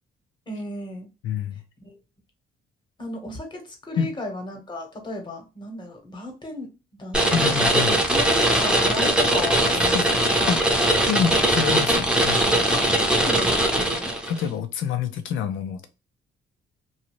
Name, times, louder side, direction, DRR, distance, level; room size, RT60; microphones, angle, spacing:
voice 1, 0.5-1.1 1.8-2.0 3.0-10.5 12.7-14.1, left 2 dB, 20° left, 1.1 m, -34 dB
voice 2, 1.2-1.6 4.0-4.1 7.2-8.0 9.9-10.1 10.5-10.6 11.1-12.6 14.3-15.9, left 7 dB, 80° left, 0.6 m, -27 dB
sound 1, 7.1-14.4, right 1 dB, 5° right, 0.7 m, -20 dB
2.7 x 2.3 x 3.0 m
cardioid pair, 90°, 20 cm